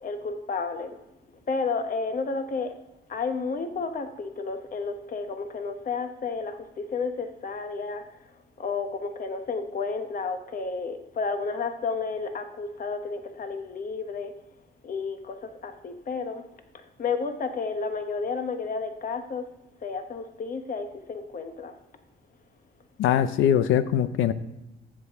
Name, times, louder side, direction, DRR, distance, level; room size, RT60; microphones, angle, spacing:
voice 1, 0.0-1.0 1.5-2.7 3.1-8.0 8.6-14.3 14.8-16.4 16.7-19.5 19.8-21.7, left 4 dB, 45° left, 1.1 m, -31 dB
voice 2, 23.0-24.3, left 10 dB, 85° left, 0.6 m, -22 dB
12.5 x 7.6 x 3.6 m
cardioid pair, 90°, 20 cm